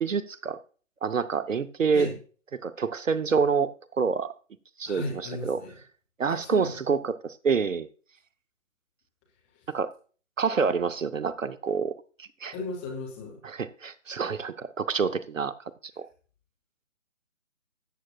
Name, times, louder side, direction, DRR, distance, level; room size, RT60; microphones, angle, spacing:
voice 1, 0.0-0.6 1.0-2.1 2.6-4.3 4.8-5.0 5.4-5.6 6.2-7.9 9.7-9.9 10.4-12.5 13.4-15.5 16.0-16.1, right 5 dB, 75° right, 14 dB, 0.7 m, -27 dB
voice 2, 4.8-5.7 6.3-6.7 12.5-13.4, left 2 dB, 5° left, -2 dB, 0.8 m, -35 dB
13.5 x 8.5 x 2.3 m, 0.39 s
figure-of-eight pair, 145°, 39 cm